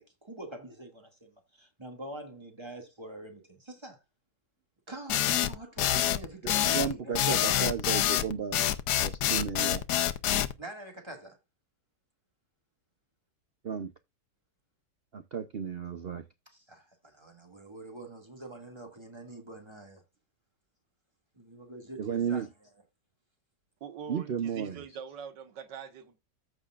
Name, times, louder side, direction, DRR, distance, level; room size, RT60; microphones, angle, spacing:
voice 1, 0.0-4.0 4.9-7.7 9.3-9.4 10.6-11.4 16.5-20.0 21.3-22.4, right 2 dB, 15° right, 2.0 m, -45 dB
sound 1, 5.1-10.5, left 12 dB, 75° left, 1.3 m, -26 dB
voice 2, 6.4-8.6 9.0-9.8 13.6-13.9 15.1-16.2 22.0-22.5 24.1-24.8, right 7 dB, 60° right, 0.6 m, -33 dB
voice 3, 23.8-26.2, right 7 dB, 90° right, 1.8 m, -43 dB
14.0 x 6.2 x 2.4 m
omnidirectional pair, 1.8 m